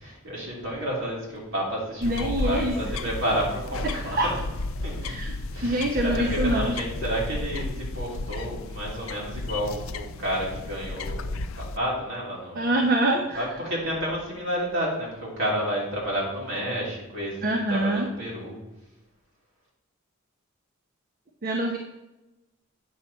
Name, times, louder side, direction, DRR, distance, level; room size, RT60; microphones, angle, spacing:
voice 1, 0.0-4.3 4.8-5.1 5.5-12.7 13.1-17.4 17.7-18.6, equal, 65° right, -4 dB, 3.2 m, -30 dB
sound 1, 2.0-11.8, left 2 dB, 75° left, 0.5 m, -33 dB
voice 2, 2.0-2.8 3.8-4.3 5.0-5.3 5.6-6.7 12.5-13.4 17.4-18.1 21.4-21.8, right 1 dB, 45° right, 2 dB, 0.7 m, -25 dB
8.6 x 5.8 x 4.2 m, 1.0 s
head